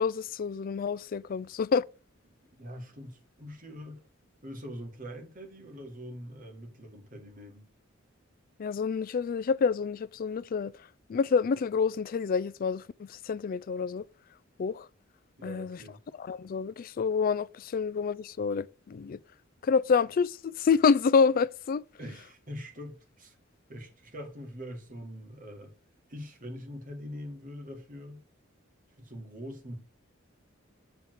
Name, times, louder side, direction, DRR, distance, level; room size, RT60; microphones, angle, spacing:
voice 1, 0.0-1.9 8.6-10.7 11.1-14.1 14.6-14.9 15.4-15.8 16.2-19.2 19.6-21.8, left 5 dB, 45° left, 0.3 m, -28 dB
voice 2, 2.5-4.0 4.4-7.7 15.4-16.0 22.0-23.3 23.7-25.7 26.1-28.2 29.0-29.8, equal, 45° right, 1.9 m, -43 dB
7.2 x 3.6 x 6.0 m
head